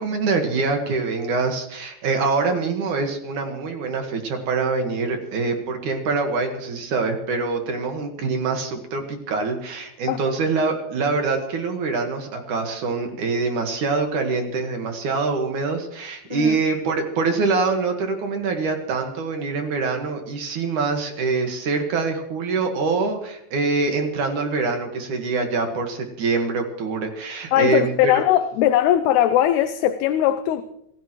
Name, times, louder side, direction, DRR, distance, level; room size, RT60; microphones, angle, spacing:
voice 1, 0.0-28.2, right 4 dB, 55° right, 2.6 m, -24 dB
voice 2, 27.5-30.6, left 11 dB, 80° left, 2.6 m, -19 dB
26.5 x 15.0 x 3.1 m
omnidirectional pair, 4.9 m